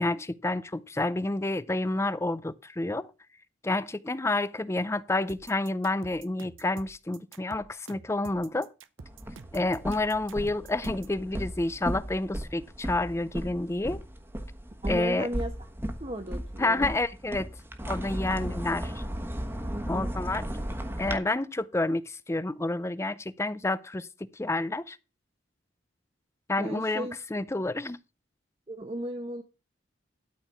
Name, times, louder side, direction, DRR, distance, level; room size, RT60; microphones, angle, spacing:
voice 1, 0.0-3.1 3.6-8.7 9.5-14.0 14.9-15.3 16.6-17.5 17.9-19.0 19.9-20.4 21.0-24.1 24.3-25.0 26.5-28.0, left 2 dB, 15° left, 0.4 m, -29 dB
sound 1, 5.3-11.2, right 4 dB, 85° right, 0.8 m, -48 dB
sound 2, 9.0-21.2, equal, 10° right, 1.2 m, -36 dB
voice 2, 14.8-15.5 16.0-16.9 18.3-18.5 19.7-20.1 26.6-27.2 28.7-29.4, right 1 dB, 30° right, 1.0 m, -35 dB
12.5 x 4.6 x 6.8 m
head